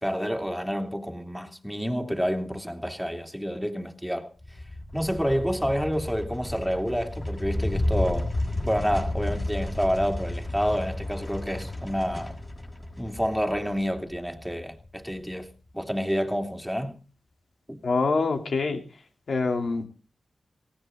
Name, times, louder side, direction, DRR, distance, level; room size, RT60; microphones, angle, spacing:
voice 1, 0.0-4.3 4.9-8.3 8.6-12.4 13.0-15.5 15.7-17.0 17.7-17.8, equal, 5° left, 3.1 m, -28 dB
sound 1, 4.4-15.0, left 1 dB, 30° left, 7.0 m, -32 dB
voice 2, 17.8-18.8 19.3-19.9, left 4 dB, 70° left, 3.3 m, -25 dB
18.5 x 17.0 x 3.9 m
cardioid pair, 65°, 0 cm